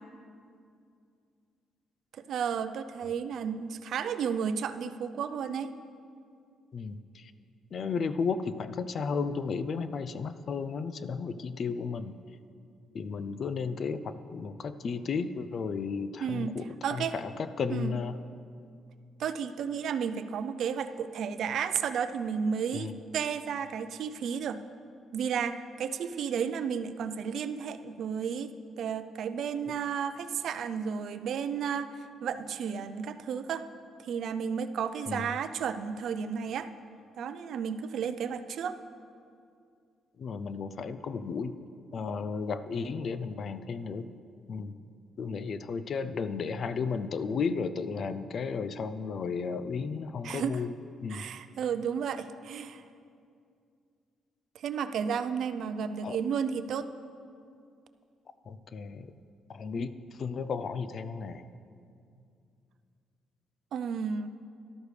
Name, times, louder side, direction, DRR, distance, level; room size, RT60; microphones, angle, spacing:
voice 1, 2.1-5.7 16.2-17.2 17.7-18.0 19.2-24.6 25.1-33.7 34.0-36.7 37.1-38.8 50.2-50.6 51.1-52.8 54.5-56.9 63.7-64.3, right 7 dB, 70° right, 11 dB, 0.5 m, -33 dB
voice 2, 6.7-7.3 7.7-12.1 12.9-18.1 22.7-22.9 35.1-35.3 40.2-41.6 41.9-44.1 44.5-44.7 45.2-50.7 51.0-51.2 56.0-56.2 58.5-59.1 59.5-59.9 60.2-61.5, left 5 dB, 55° left, 12 dB, 0.5 m, -34 dB
13.0 x 12.5 x 3.3 m, 2.4 s
cardioid pair, 90°, 0 cm